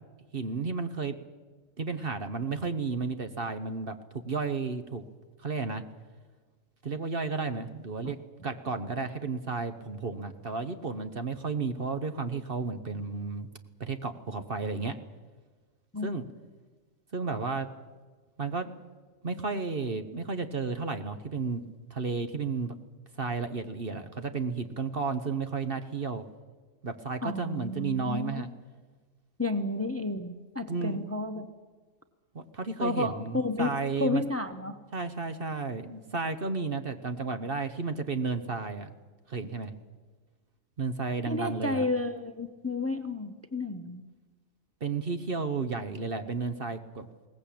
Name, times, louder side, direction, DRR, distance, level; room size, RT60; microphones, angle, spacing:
voice 1, 0.3-1.2 1.8-4.0 4.2-5.0 5.4-5.8 6.8-8.2 8.4-13.5 13.8-14.9 16.0-16.2 17.1-17.7 18.4-18.7 19.2-21.6 21.9-22.7 23.2-26.2 26.8-28.5 30.7-31.0 32.3-34.2 34.9-38.9 39.3-39.7 40.8-41.8 44.8-47.1, right 4 dB, 45° right, 9 dB, 1.2 m, -32 dB
voice 2, 27.2-28.4 29.4-31.4 32.8-33.7 34.0-34.8 41.3-44.0, left 2 dB, 10° left, 9 dB, 1.0 m, -31 dB
21.5 x 18.5 x 8.6 m, 1.4 s
omnidirectional pair, 1.4 m